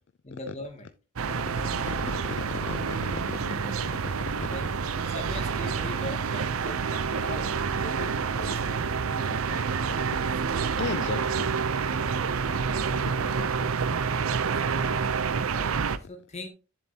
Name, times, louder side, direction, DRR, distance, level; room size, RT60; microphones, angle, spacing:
voice 1, 0.2-0.9 4.4-4.7 4.9-9.7 15.5-16.5, left 1 dB, 30° left, 2.4 m, -41 dB
sound 1, 1.2-16.0, right 5 dB, 75° right, 0.6 m, -28 dB
voice 2, 1.6-3.6 4.3-4.5 10.7-11.5 13.4-13.5, left 5 dB, 55° left, 0.4 m, -36 dB
10.5 x 7.4 x 2.8 m
head